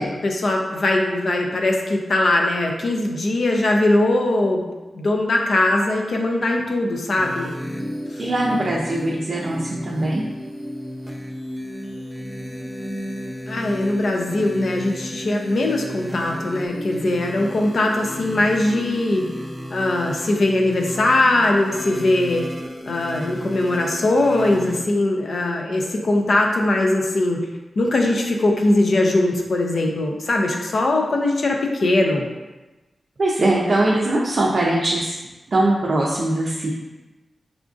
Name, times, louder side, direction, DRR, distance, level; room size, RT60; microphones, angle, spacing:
voice 1, 0.0-4.6 4.9-7.5 8.1-8.2 13.5-19.3 19.7-22.4 22.9-27.4 27.8-32.3, left 2 dB, 65° left, 1 dB, 0.5 m, -20 dB
sound 1, 7.2-24.8, equal, ahead, 0.5 m, -33 dB
voice 2, 8.2-10.2 33.2-35.2 35.5-36.7, right 1 dB, 55° right, -4 dB, 0.4 m, -21 dB
4.9 x 2.5 x 2.4 m, 1.1 s
wide cardioid pair, 105°, 0 cm